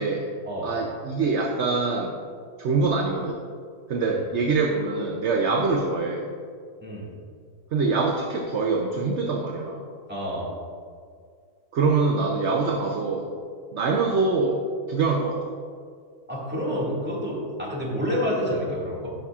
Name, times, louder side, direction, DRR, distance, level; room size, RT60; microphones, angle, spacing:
voice 1, 0.6-2.2 2.6-3.4 3.9-6.3 7.7-9.8 11.7-13.3 13.7-15.4, right 4 dB, 60° right, 1 dB, 0.8 m, -24 dB
voice 2, 10.1-10.5 16.3-19.1, equal, 5° right, -7 dB, 1.9 m, -28 dB
11.5 x 5.6 x 2.4 m, 2.1 s
omnidirectional pair, 1.6 m